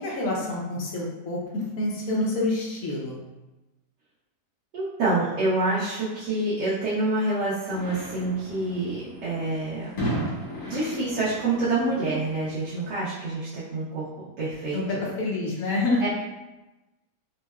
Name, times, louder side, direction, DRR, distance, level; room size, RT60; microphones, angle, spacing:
voice 1, 0.0-3.2 14.7-16.1, left 2 dB, 65° left, -3 dB, 1.0 m, -27 dB
voice 2, 4.7-9.9 10.6-14.1 14.4-15.1 16.0-16.1, right 2 dB, 80° right, -10 dB, 1.4 m, -27 dB
sound 1, 7.7-12.9, equal, 85° left, 1.9 m, -35 dB
4.4 x 2.1 x 2.3 m, 1.1 s
omnidirectional pair, 1.7 m